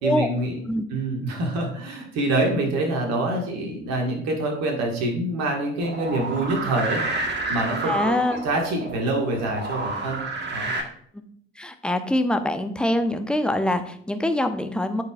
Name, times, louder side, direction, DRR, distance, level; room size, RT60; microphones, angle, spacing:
voice 1, 0.0-0.6 0.9-7.0 7.5-10.2 10.5-10.7, right 2 dB, 55° right, 2 dB, 1.8 m, -26 dB
sound 1, 5.8-10.8, right 3 dB, 35° right, 1.5 m, -30 dB
voice 2, 7.9-8.4 11.1-11.3 11.6-15.0, left 1 dB, 5° left, 7 dB, 0.8 m, -24 dB
13.0 x 4.8 x 2.4 m, 0.64 s
figure-of-eight pair, 50°, 31 cm